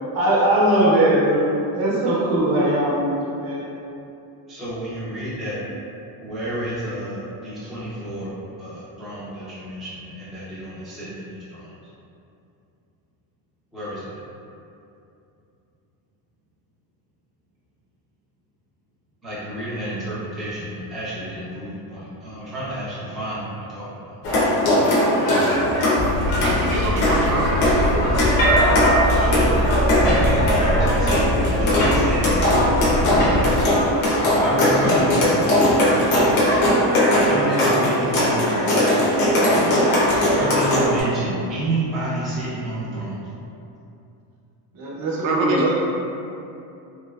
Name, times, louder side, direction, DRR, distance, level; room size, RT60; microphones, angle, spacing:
voice 1, 0.1-3.7 44.7-45.7, right 1 dB, 45° right, -6 dB, 0.8 m, -20 dB
voice 2, 4.5-5.6 6.2-8.3 8.6-11.7 13.7-14.2 19.2-24.2 29.0-29.6 29.8-33.5 34.0-36.6 36.9-39.7 40.2-43.2, right 1 dB, ahead, -12 dB, 0.4 m, -30 dB
sound 1, 24.2-41.0, equal, 85° left, 0.9 m, -19 dB
sound 2, 26.0-33.6, left 1 dB, 60° left, 0.5 m, -24 dB
voice 3, 26.4-28.4 45.2-45.7, right 2 dB, 85° right, -1 dB, 0.6 m, -25 dB
3.2 x 2.8 x 2.3 m, 2.7 s
cardioid pair, 160°, 48 cm